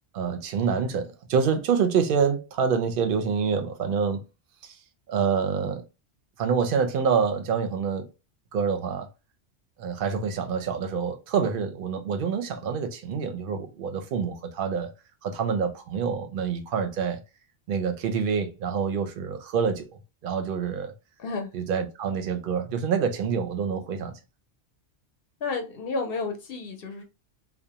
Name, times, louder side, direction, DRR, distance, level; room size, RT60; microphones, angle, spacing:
voice 1, 0.1-4.2 4.6-4.7 5.1-5.8 6.4-8.1 8.5-9.1 9.8-14.9 15.2-17.2 17.7-19.9 20.2-20.9 21.5-24.2, right 6 dB, 60° right, 0.7 m, -26 dB
voice 2, 21.2-21.5 25.4-27.0, left 4 dB, 60° left, 0.7 m, -31 dB
2.4 x 2.0 x 2.7 m
omnidirectional pair, 1.2 m